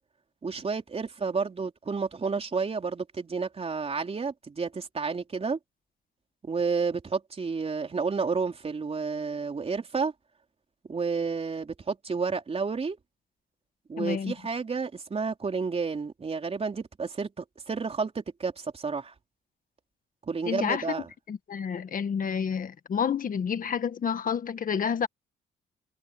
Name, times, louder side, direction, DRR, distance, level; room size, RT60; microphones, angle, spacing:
voice 1, 0.4-5.6 6.4-10.1 10.9-13.0 13.9-19.1 20.3-21.0, right 5 dB, 35° right, 4.0 m, -31 dB
voice 2, 14.0-14.3 20.5-20.9 21.3-25.1, left 7 dB, 50° left, 1.7 m, -29 dB
cardioid pair, 90°, 18 cm